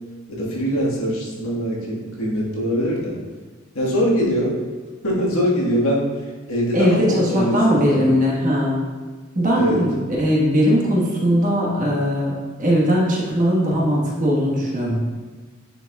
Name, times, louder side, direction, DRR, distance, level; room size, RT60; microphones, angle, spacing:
voice 1, 0.3-3.2 3.7-4.6 5.0-6.1 6.5-8.1 9.5-9.8, equal, 85° left, -5 dB, 1.6 m, -22 dB
voice 2, 6.7-8.8 9.3-12.3 12.6-15.0, equal, 40° right, -4 dB, 1.3 m, -19 dB
9.5 x 4.6 x 2.3 m, 1.4 s
head